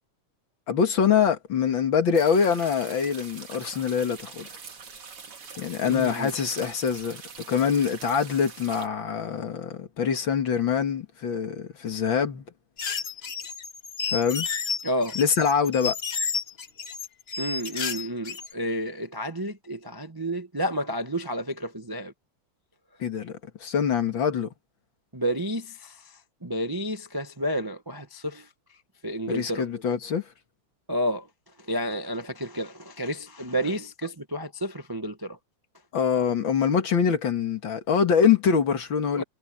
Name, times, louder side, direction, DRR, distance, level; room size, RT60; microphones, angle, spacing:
voice 1, 0.7-4.5 5.6-7.2 7.5-12.4 14.1-14.5 15.2-16.0 23.0-24.5 29.3-30.3 35.9-39.2, left 7 dB, 65° left, 2.5 m, -24 dB
sound 1, 2.1-8.9, right 5 dB, 85° right, 3.6 m, -44 dB
voice 2, 5.8-6.3 14.8-15.2 17.4-22.1 25.1-26.0 26.4-28.5 29.0-29.6 30.9-31.3 31.7-35.4 39.2-39.3, equal, 15° right, 0.7 m, -30 dB
sound 2, 12.8-18.5, left 5 dB, 40° left, 1.0 m, -31 dB
omnidirectional pair, 2.4 m